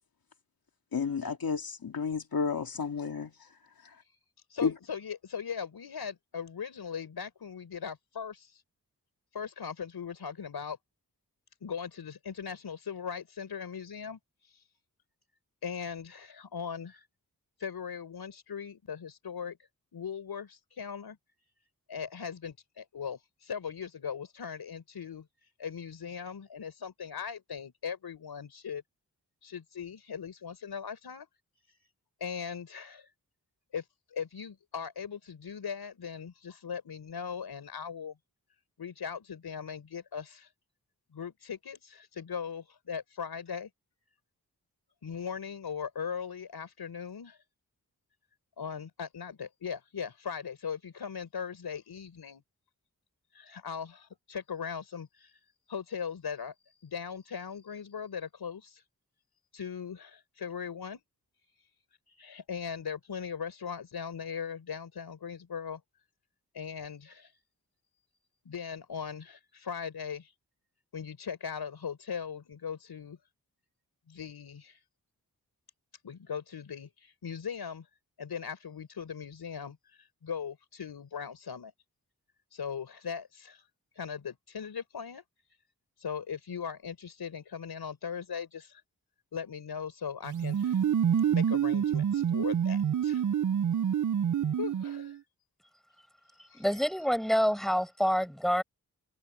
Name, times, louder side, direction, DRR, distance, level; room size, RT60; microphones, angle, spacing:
voice 1, 0.9-3.5 3.8-4.0 4.6-4.7, left 5 dB, 70° left, 2.4 m, -32 dB
voice 2, 4.5-8.6 9.3-10.8 11.6-14.2 15.6-17.0 17.6-19.6 19.9-21.2 21.9-25.3 25.6-28.8 29.4-31.3 32.2-33.1 33.7-33.8 34.1-38.2 38.8-40.5 41.1-43.7 45.0-47.4 48.6-52.4 53.3-55.3 55.7-56.5 56.8-58.8 59.5-61.0 62.2-65.8 66.5-67.3 68.4-70.3 70.9-73.2 74.1-74.8 76.0-77.8 78.2-79.8 80.2-81.7 82.5-83.6 84.0-85.2 86.0-88.8 89.3-90.8 91.3-93.2 94.6-95.2 96.5-96.6, left 7 dB, 90° left, 5.2 m, -39 dB
sound 1, 90.3-95.2, right 9 dB, 55° right, 0.6 m, -27 dB
voice 3, 96.4-98.6, equal, ahead, 7.9 m, -27 dB
cardioid pair, 50°, 37 cm